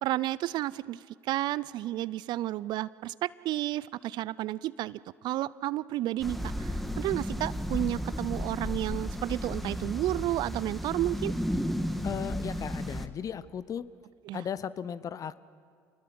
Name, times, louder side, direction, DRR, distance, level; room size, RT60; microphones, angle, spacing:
voice 1, 0.0-5.0 5.2-11.3 14.3-14.4, right 15 dB, 60° right, 20 dB, 0.5 m, -32 dB
sound 1, 6.2-13.1, equal, ahead, 1.6 m, -33 dB
voice 2, 12.0-13.8 14.3-15.5, left 8 dB, 45° left, 17 dB, 0.8 m, -36 dB
28.0 x 20.0 x 6.1 m, 2.2 s
hypercardioid pair, 70°, 8 cm